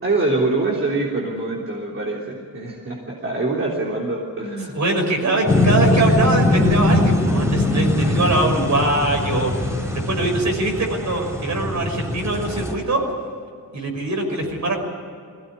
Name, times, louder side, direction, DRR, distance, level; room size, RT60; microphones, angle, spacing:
voice 1, 0.0-4.8 8.0-8.1, right 2 dB, 40° right, -3 dB, 3.6 m, -24 dB
voice 2, 4.7-9.7 10.1-13.0 13.7-14.8, right 2 dB, 55° right, 2 dB, 6.0 m, -22 dB
sound 1, 5.5-12.7, left 1 dB, 10° right, 4.1 m, -21 dB
21.5 x 17.5 x 9.8 m, 2.4 s
cardioid pair, 100°, 34 cm